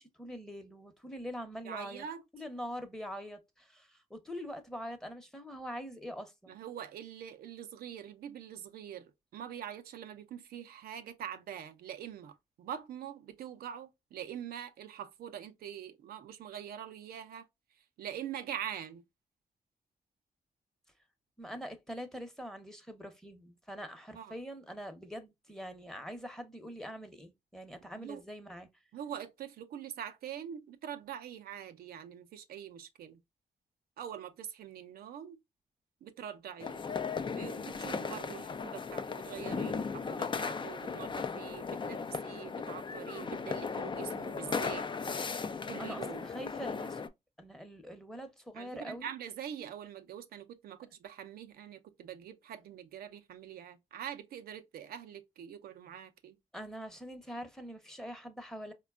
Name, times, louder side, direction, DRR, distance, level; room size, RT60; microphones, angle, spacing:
voice 1, 0.0-2.0 2.3-6.6 21.4-28.7 45.8-47.0 47.4-49.1 56.5-58.7, equal, 5° left, 0.9 m, -44 dB
voice 2, 1.7-2.2 6.5-17.4 18.0-19.0 24.1-24.3 28.0-28.2 28.9-33.2 34.0-35.4 36.0-36.8 37.2-44.9 45.7-46.3 48.5-56.4, right 9 dB, 85° right, 0.5 m, -44 dB
sound 1, 36.6-47.1, left 5 dB, 30° left, 0.4 m, -37 dB
4.1 x 2.2 x 2.3 m
cardioid pair, 65°, 15 cm